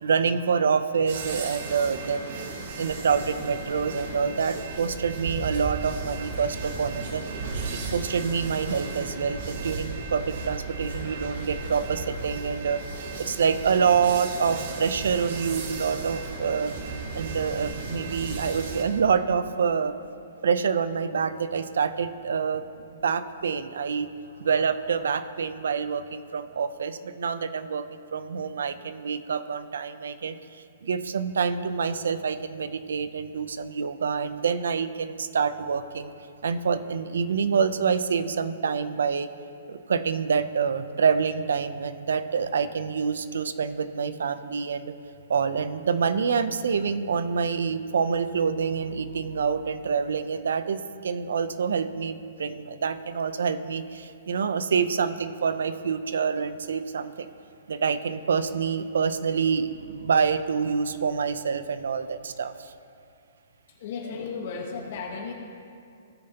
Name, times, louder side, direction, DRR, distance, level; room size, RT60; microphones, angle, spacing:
voice 1, 0.0-2.5 2.8-7.2 7.7-16.7 17.1-19.9 20.4-22.7 23.0-24.1 24.4-36.1 36.4-39.3 39.7-44.9 45.3-57.3 57.7-62.7 64.0-64.1, right 6 dB, 85° right, 12 dB, 0.6 m, -27 dB
sound 1, 1.1-18.8, right 3 dB, 55° right, 1.6 m, -35 dB
voice 2, 63.8-65.3, left 5 dB, 50° left, 0 dB, 1.3 m, -34 dB
17.5 x 6.5 x 2.9 m, 2.5 s
hypercardioid pair, 160°, 0 cm